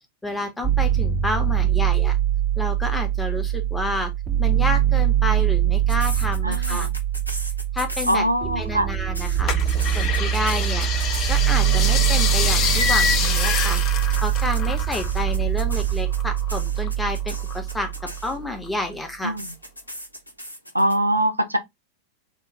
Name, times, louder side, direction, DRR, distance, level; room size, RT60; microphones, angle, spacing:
voice 1, 0.2-2.2 2.6-4.1 4.4-6.9 7.7-8.2 8.6-9.6 10.0-10.9 11.3-13.8 14.2-19.4, left 2 dB, 10° left, 0.9 m, -30 dB
sound 1, 0.6-18.6, right 11 dB, 15° right, 0.3 m, -23 dB
sound 2, 5.9-8.5 8.9-11.6 12.6-18.6 19.4-21.0, equal, 85° left, 0.7 m, -36 dB
voice 2, 6.4-6.9 8.1-8.9 19.2-19.5 20.7-21.6, right 1 dB, 85° right, 0.5 m, -22 dB
sound 3, 9.5-15.3 15.6-16.9 17.3-18.2 18.7-18.8, left 6 dB, 35° left, 0.7 m, -26 dB
3.7 x 2.4 x 3.1 m
figure-of-eight pair, 90°, 0 cm